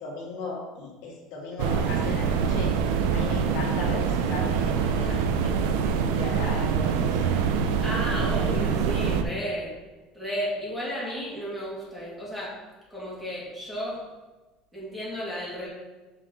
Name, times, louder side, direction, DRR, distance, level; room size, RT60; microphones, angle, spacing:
voice 1, 0.0-2.7 3.1-7.4, left 3 dB, 70° left, -3 dB, 2.0 m, -37 dB
sound 1, 1.6-9.2, right 6 dB, 85° right, 0.6 m, -25 dB
voice 2, 7.8-9.7 10.1-12.5 12.9-14.0 14.7-15.7, equal, 5° right, -7 dB, 2.6 m, -33 dB
7.4 x 5.5 x 4.1 m, 1.2 s
cardioid pair, 150°, 0 cm